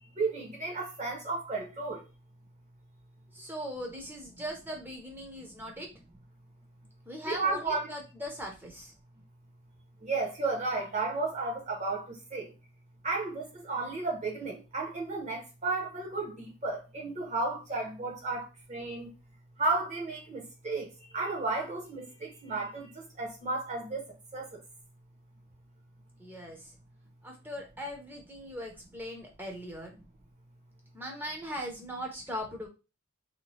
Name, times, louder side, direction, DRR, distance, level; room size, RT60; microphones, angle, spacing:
voice 1, 0.2-2.0 7.3-7.9 10.0-12.1 12.3-12.5 13.0-19.1 19.6-20.8 21.1-22.9 23.2-24.0 24.3-24.5, right 3 dB, 35° right, 0.9 m, -33 dB
voice 2, 3.3-5.9 7.1-8.9 26.2-26.7 27.2-30.0 30.9-32.7, equal, 10° right, 0.7 m, -40 dB
2.8 x 2.2 x 3.1 m
head